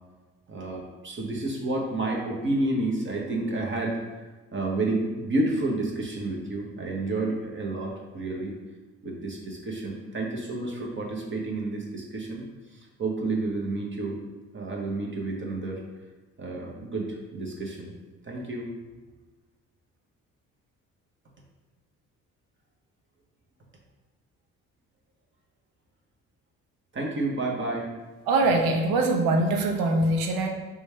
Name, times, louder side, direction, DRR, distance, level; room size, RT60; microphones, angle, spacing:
voice 1, 0.5-4.0 4.5-8.6 9.0-12.4 12.7-14.2 14.5-15.8 16.4-17.9 18.2-18.7 26.9-27.9, right 2 dB, 35° right, -2 dB, 0.9 m, -30 dB
voice 2, 28.3-30.5, right 2 dB, 75° right, 3 dB, 0.7 m, -23 dB
3.1 x 2.4 x 4.2 m, 1.3 s
hypercardioid pair, 55°, 36 cm